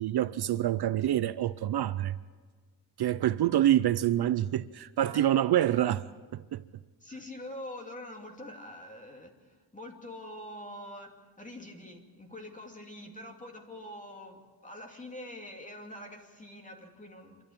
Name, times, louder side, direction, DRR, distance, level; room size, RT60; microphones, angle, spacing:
voice 1, 0.0-2.2 3.0-6.0 6.3-6.6, right 12 dB, 60° right, 0.6 m, -26 dB
voice 2, 5.1-5.5 7.0-17.5, left 1 dB, 15° left, 2.7 m, -45 dB
27.0 x 12.5 x 8.8 m
wide cardioid pair, 140°, 44 cm